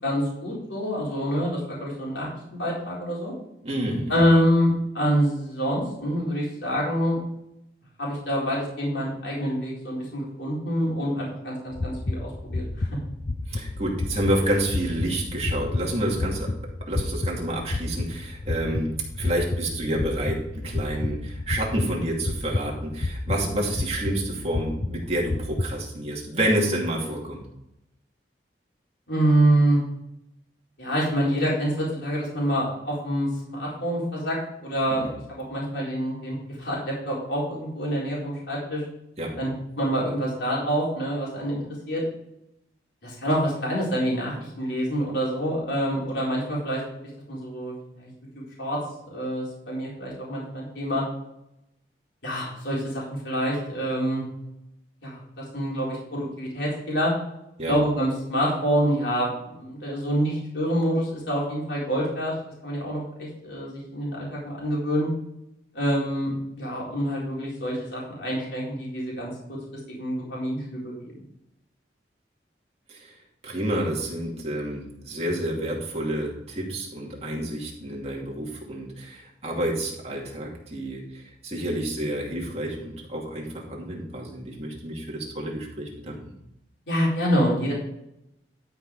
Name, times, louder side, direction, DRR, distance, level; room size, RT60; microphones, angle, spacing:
voice 1, 0.0-3.3 4.1-7.2 8.0-12.9 23.4-23.6 29.1-29.8 30.8-38.8 39.4-39.5 39.8-41.6 41.9-42.0 43.0-46.8 47.3-48.1 48.6-48.8 49.1-51.0 52.2-54.2 55.0-57.1 57.7-62.4 62.6-65.1 65.7-69.3 69.9-70.9 86.9-87.7, equal, 75° left, -5 dB, 4.2 m, -26 dB
voice 2, 3.6-4.2 13.5-16.5 16.9-27.4 34.9-35.1 39.2-39.3 57.6-57.8 72.9-86.3, right 1 dB, 35° right, -2 dB, 2.5 m, -29 dB
sound 1, 11.7-25.7, left 2 dB, 40° left, 0.6 m, -30 dB
12.0 x 5.9 x 4.8 m, 0.83 s
head